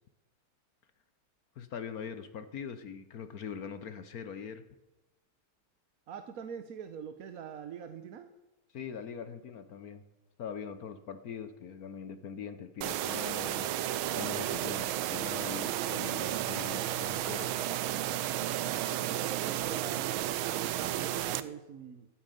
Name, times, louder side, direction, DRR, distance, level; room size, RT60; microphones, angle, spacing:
voice 1, 1.6-4.6 8.7-10.0 10.4-13.7 14.2-17.5, left 7 dB, 55° left, 11 dB, 1.1 m, -42 dB
voice 2, 6.1-8.3 19.0-20.2 20.6-22.1, right 7 dB, 55° right, 9 dB, 1.0 m, -43 dB
sound 1, 12.8-21.4, right 13 dB, 75° right, 1.4 m, -33 dB
13.0 x 9.0 x 9.1 m, 1.0 s
omnidirectional pair, 2.4 m